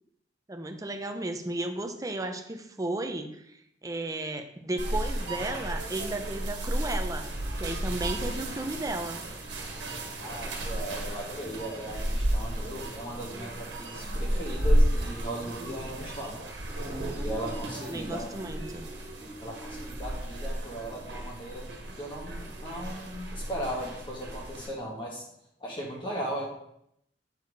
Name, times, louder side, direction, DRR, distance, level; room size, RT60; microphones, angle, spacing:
voice 1, 0.5-3.4 3.8-7.3 7.6-9.2 17.8-18.8, right 2 dB, 20° right, 6 dB, 0.7 m, -34 dB
sound 1, 4.8-24.7, right 1 dB, 80° right, 1.6 m, -32 dB
voice 2, 10.2-16.4 17.1-18.4 19.4-25.2 25.6-26.5, equal, 25° left, -3 dB, 1.6 m, -37 dB
8.5 x 4.5 x 4.7 m, 0.75 s
head